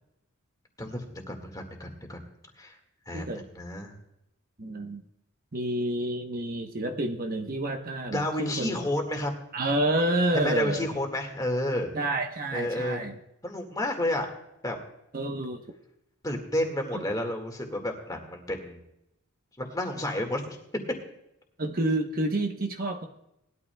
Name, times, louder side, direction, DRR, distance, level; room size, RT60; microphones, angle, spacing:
voice 1, 0.8-2.2 2.6-2.8 3.1-3.9 8.1-9.3 10.3-11.9 12.5-13.0 13.4-14.3 14.6-14.8 16.2-18.8 19.6-20.6, left 1 dB, 15° left, 3 dB, 1.9 m, -31 dB
voice 2, 4.6-5.0 5.5-8.9 9.5-10.9 11.9-13.2 15.1-15.6 16.9-17.0 21.6-23.1, right 1 dB, 40° right, 3 dB, 1.0 m, -29 dB
19.5 x 12.5 x 2.3 m, 0.84 s
head